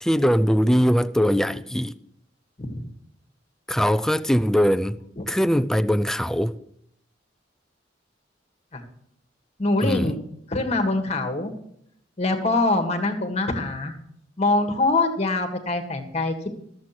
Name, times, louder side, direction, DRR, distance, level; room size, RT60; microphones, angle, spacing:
voice 1, 0.0-1.9 3.7-5.0 5.3-6.6 9.8-10.1, equal, 5° left, 0.4 m, -21 dB
voice 2, 9.6-10.1 10.5-11.5 12.2-13.9 14.4-16.6, left 2 dB, 35° left, 1.8 m, -24 dB
13.5 x 7.7 x 6.0 m
head